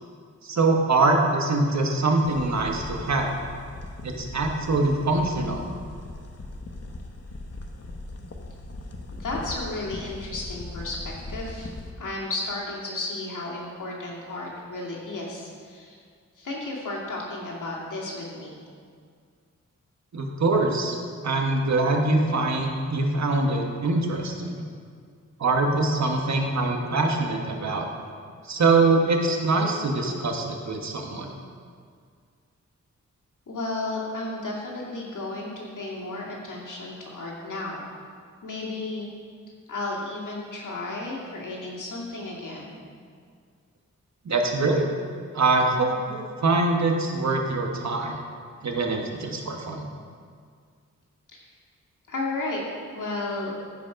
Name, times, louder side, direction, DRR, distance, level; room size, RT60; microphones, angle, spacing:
voice 1, 0.4-3.3 4.0-5.6 20.1-21.0 21.2-24.6 25.4-27.9 28.5-31.3 44.2-44.8 45.3-48.2 48.6-49.9, right 3 dB, 65° right, 2 dB, 1.3 m, -23 dB
sound 1, 2.2-11.9, left 2 dB, 55° left, 1.0 m, -39 dB
voice 2, 9.1-11.7 12.0-16.0 16.4-18.6 33.5-37.9 38.4-39.1 39.7-42.7 51.3-51.4 52.1-52.6 52.9-53.6, left 2 dB, 90° left, -4 dB, 2.3 m, -33 dB
15.0 x 5.3 x 5.1 m, 2.1 s
wide cardioid pair, 130°, 30 cm